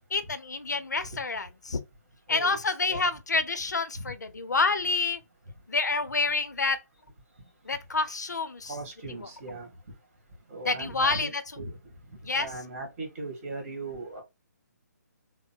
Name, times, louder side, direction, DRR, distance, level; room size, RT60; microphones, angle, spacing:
voice 1, 0.1-1.8 2.3-5.2 5.7-6.8 7.7-8.7 9.2-9.3 10.6-11.4 12.2-12.5, left 3 dB, 75° left, 0.7 m, -28 dB
voice 2, 2.3-2.6 2.9-3.1 4.0-4.1 8.7-9.7 10.5-11.3 11.6-11.8 12.3-14.2, right 2 dB, 45° right, 1.9 m, -38 dB
3.7 x 2.1 x 4.3 m
figure-of-eight pair, 140°, 9 cm